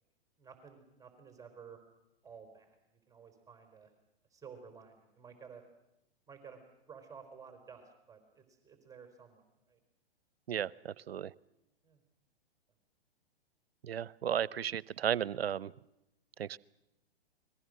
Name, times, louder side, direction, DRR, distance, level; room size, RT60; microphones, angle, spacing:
voice 1, 0.4-1.8 2.2-2.8 3.1-3.9 4.3-5.6 6.3-9.4 9.7-9.8 11.8-12.0, right 6 dB, 10° right, 5 dB, 4.4 m, -53 dB
voice 2, 10.5-11.3 13.8-15.7 16.4-16.6, right 9 dB, 75° right, 22 dB, 0.8 m, -34 dB
29.5 x 22.0 x 6.6 m, 0.90 s
hypercardioid pair, 120°, 31 cm